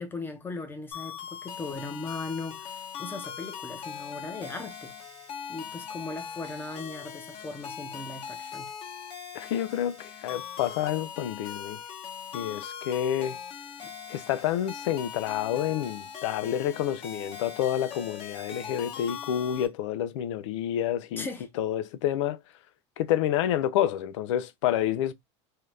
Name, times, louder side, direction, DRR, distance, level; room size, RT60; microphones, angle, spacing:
voice 1, 0.0-4.9 5.5-8.7 13.8-13.9 21.2-21.5, left 3 dB, 15° left, 0.7 m, -38 dB
sound 1, 0.9-19.7, left 7 dB, 40° left, 1.0 m, -40 dB
voice 2, 9.3-11.8 12.3-13.4 14.1-21.3 21.6-22.4 23.0-25.1, left 11 dB, 85° left, 0.4 m, -29 dB
2.8 x 2.3 x 3.2 m
supercardioid pair, 130°, 15 cm